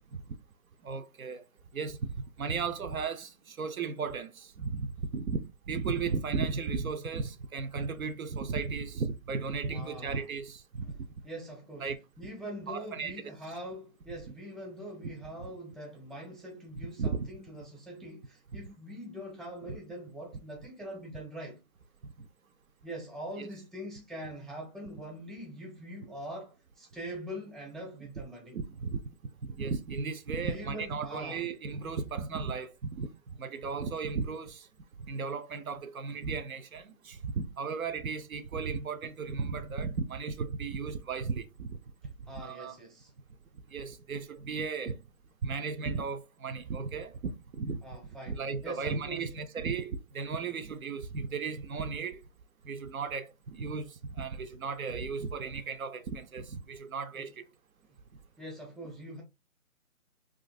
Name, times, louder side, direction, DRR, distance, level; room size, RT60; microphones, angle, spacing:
voice 1, 0.8-1.4 1.7-2.1 2.4-5.4 5.7-10.8 11.8-12.0 12.7-13.1 17.0-17.3 18.5-18.6 23.4-23.5 28.5-29.0 29.4-34.7 35.1-41.8 42.3-42.8 43.7-45.0 45.4-47.8 48.3-52.2 52.6-57.5, right 5 dB, 70° right, 0.5 m, -35 dB
voice 2, 9.7-10.2 10.8-11.0 11.2-11.9 12.2-21.6 22.8-28.6 30.4-31.5 42.3-43.1 47.8-49.3 57.2-57.3 58.4-59.2, equal, ahead, 0.4 m, -43 dB
2.8 x 2.5 x 2.4 m
hypercardioid pair, 175°, 44 cm